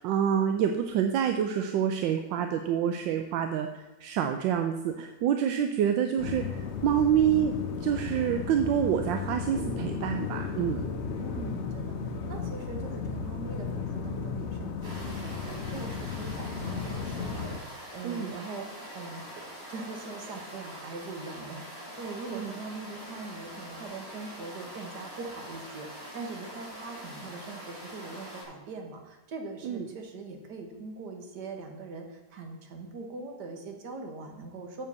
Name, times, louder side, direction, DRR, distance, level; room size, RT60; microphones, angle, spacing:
voice 1, 0.0-3.7 4.0-10.9 18.0-18.3 22.3-22.5 29.6-29.9, right 9 dB, 80° right, 6 dB, 1.3 m, -27 dB
sound 1, 6.2-17.6, left 5 dB, 55° left, 0.8 m, -34 dB
voice 2, 11.2-19.2 19.7-34.9, right 3 dB, 65° right, 4 dB, 1.8 m, -42 dB
sound 2, 14.8-28.4, equal, 30° right, 3.1 m, -44 dB
7.4 x 6.1 x 6.9 m, 1.1 s
omnidirectional pair, 2.0 m